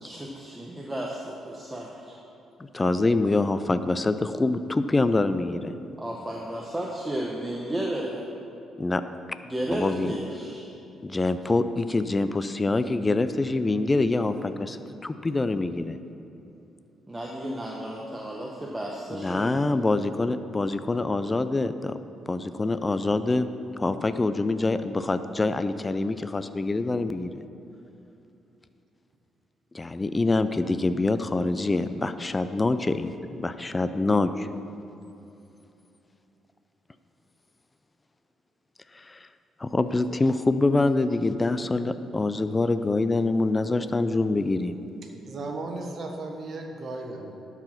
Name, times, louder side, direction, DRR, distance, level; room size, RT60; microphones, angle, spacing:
voice 1, 0.0-2.2 6.0-8.3 9.4-10.6 17.1-19.6, right 1 dB, 15° right, -2 dB, 0.9 m, -33 dB
voice 2, 2.7-5.7 8.8-9.0 9.7-10.1 11.0-16.0 19.1-22.0 22.3-23.5 23.8-27.3 29.7-33.1 33.4-34.5 38.9-39.3 39.6-44.8, left 2 dB, 20° left, 11 dB, 0.4 m, -25 dB
voice 3, 45.0-47.4, right 2 dB, 50° right, 2 dB, 1.3 m, -36 dB
11.5 x 4.9 x 5.8 m, 2.9 s
cardioid pair, 90°, 0 cm